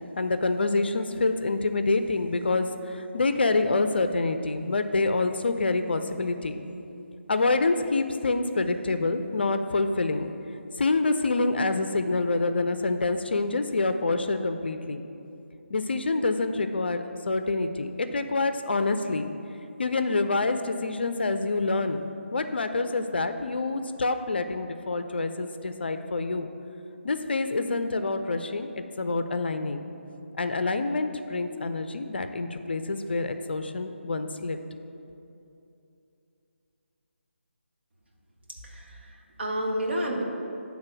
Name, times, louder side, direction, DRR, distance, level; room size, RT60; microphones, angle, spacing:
voice 1, 0.2-6.6 7.3-10.3 10.8-15.0 15.7-19.3 19.8-26.5 27.0-29.8 30.4-34.6, left 3 dB, 55° left, 8 dB, 0.4 m, -27 dB
voice 2, 38.5-40.2, equal, 60° right, -1 dB, 1.2 m, -31 dB
8.7 x 3.5 x 6.0 m, 2.8 s
figure-of-eight pair, 150°, 7 cm